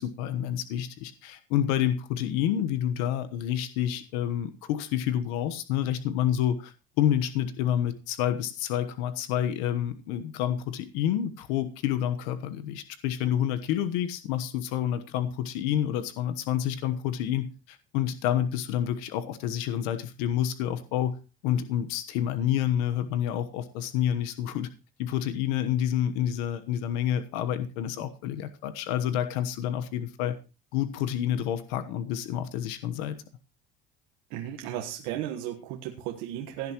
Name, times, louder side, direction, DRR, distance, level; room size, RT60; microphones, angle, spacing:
voice 1, 0.0-21.2 21.4-24.7 25.0-30.4 30.7-33.2, left 10 dB, 80° left, 10 dB, 1.2 m, -28 dB
voice 2, 34.3-36.7, right 11 dB, 80° right, 3 dB, 1.5 m, -35 dB
17.0 x 10.5 x 3.0 m, 0.30 s
cardioid pair, 150°, 21 cm